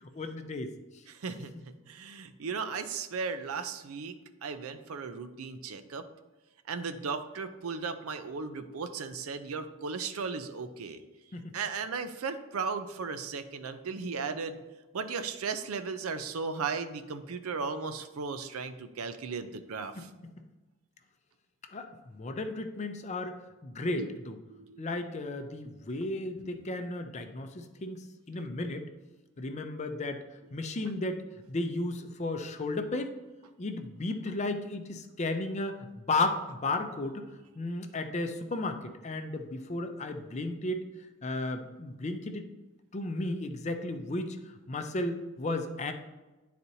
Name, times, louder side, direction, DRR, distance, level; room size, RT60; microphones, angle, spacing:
voice 1, 0.0-0.7 11.3-11.5 20.0-20.3 21.7-24.4 24.8-28.9 29.4-30.2 30.5-31.2 31.5-33.1 33.6-37.3 37.6-40.8 41.2-42.5 42.9-44.4 44.7-45.9, left 2 dB, 30° left, 7 dB, 0.5 m, -34 dB
voice 2, 1.1-1.5 1.9-4.1 4.4-6.1 6.7-11.0 11.5-14.6 14.9-20.1 23.9-24.1 24.5-24.9, right 5 dB, 90° right, 9 dB, 0.5 m, -36 dB
11.0 x 4.2 x 2.7 m, 1.1 s
head